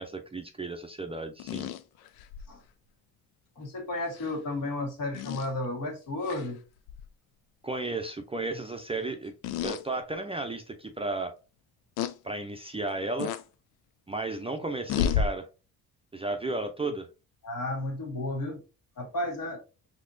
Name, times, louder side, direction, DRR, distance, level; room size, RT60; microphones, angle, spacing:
voice 1, 0.0-1.7 7.6-9.3 9.6-11.3 12.2-13.3 14.1-15.5 16.1-17.1, right 2 dB, 15° right, 0.5 m, -33 dB
sound 1, 1.4-2.5 4.2-4.3 5.1-5.5 6.3-6.5 6.9-7.1 9.4-9.8 10.4-10.5 12.0-12.1 13.2-13.4 14.9-15.3, left 8 dB, 80° left, 0.5 m, -30 dB
voice 2, 3.6-6.6 17.4-18.6 19.0-19.6, left 2 dB, 60° left, 1.7 m, -33 dB
4.1 x 2.9 x 2.6 m
cardioid pair, 80°, 37 cm